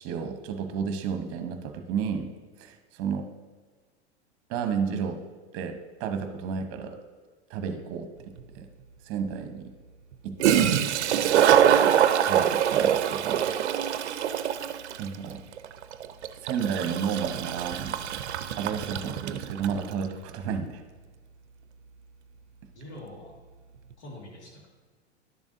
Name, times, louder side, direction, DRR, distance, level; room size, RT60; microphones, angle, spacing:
voice 1, 0.0-2.3 2.6-3.3 4.5-5.2 5.5-7.0 7.5-8.1 8.5-8.7 9.0-9.7 10.2-10.7 12.2-13.5 15.0-15.4 16.4-18.0 18.6-20.8, right 6 dB, 40° right, 7 dB, 1.0 m, -32 dB
Toilet flush, 8.4-8.5 10.1-10.2 10.4-19.8, right 9 dB, 75° right, 0.6 m, -24 dB
voice 2, 22.7-23.4 24.0-24.7, left 1 dB, 75° left, -1 dB, 2.1 m, -44 dB
11.0 x 7.2 x 2.7 m, 1.4 s
hypercardioid pair, 95°, 34 cm